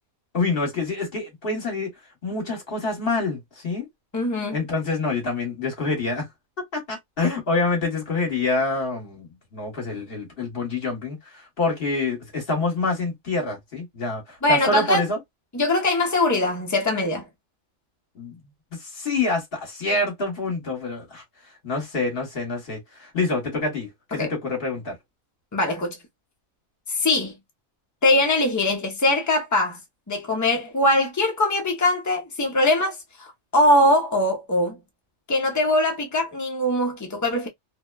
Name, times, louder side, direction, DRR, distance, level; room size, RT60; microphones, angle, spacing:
voice 1, 0.3-1.9 2.2-3.9 4.5-6.3 6.7-15.2 18.1-18.4 18.8-21.2 21.6-24.9, left 3 dB, 45° left, 1.3 m, -26 dB
voice 2, 4.1-4.6 14.4-15.0 15.5-17.3 24.1-24.3 25.5-26.0 26.9-27.3 28.0-29.8 30.1-33.3 33.5-34.8 35.3-37.5, left 1 dB, 30° left, 0.3 m, -22 dB
2.8 x 2.1 x 2.2 m
omnidirectional pair, 1.4 m